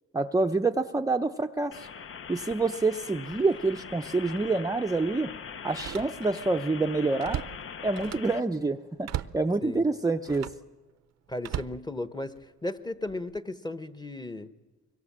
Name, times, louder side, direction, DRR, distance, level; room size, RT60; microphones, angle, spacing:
voice 1, 0.1-1.9 2.3-5.3 5.6-7.4 7.8-10.5, right 3 dB, 10° right, 4 dB, 0.7 m, -27 dB
sound 1, 1.7-8.4, left 7 dB, 45° left, 0.8 m, -42 dB
Slam, 3.5-3.8 4.3-4.4 5.7-6.5 6.8-8.4 9.0-9.5 10.2-10.7 11.4-12.5 13.1-13.4, right 11 dB, 60° right, 0.7 m, -37 dB
voice 2, 11.3-12.4 12.6-14.5, left 2 dB, 15° left, 11 dB, 1.1 m, -35 dB
24.5 x 22.5 x 7.5 m, 1.2 s
cardioid pair, 90°, 30 cm